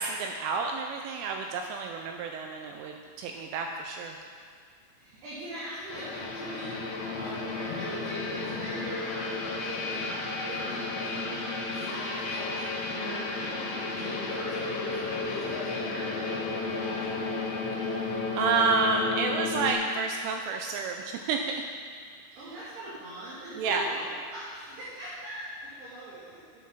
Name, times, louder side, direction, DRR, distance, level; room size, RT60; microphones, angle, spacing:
voice 1, 0.0-4.2 17.8-18.1 18.4-21.4 23.6-23.9, right 4 dB, 85° right, 3 dB, 2.9 m, -30 dB
voice 2, 4.9-10.0 10.5-17.1 22.4-25.5 25.8-26.4, right 1 dB, 60° right, -10 dB, 3.6 m, -41 dB
sound 1, 5.9-19.7, left 3 dB, 70° left, 3.1 m, -33 dB
8.5 x 8.2 x 5.7 m, 2.1 s
omnidirectional pair, 6.0 m